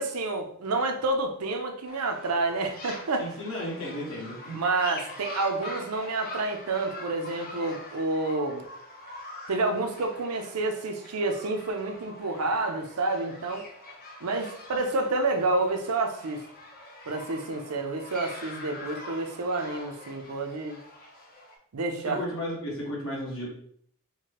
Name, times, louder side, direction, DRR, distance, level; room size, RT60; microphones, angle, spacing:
voice 1, 0.0-3.3 4.5-8.6 9.5-13.7 14.2-16.4 17.1-20.8 21.7-22.2, right 3 dB, 80° right, 4 dB, 0.6 m, -29 dB
sound 1, 1.9-21.6, left 1 dB, 40° left, 0.7 m, -44 dB
voice 2, 3.2-4.6 22.0-23.5, equal, 65° left, -5 dB, 1.5 m, -34 dB
4.6 x 2.2 x 2.9 m, 0.64 s
head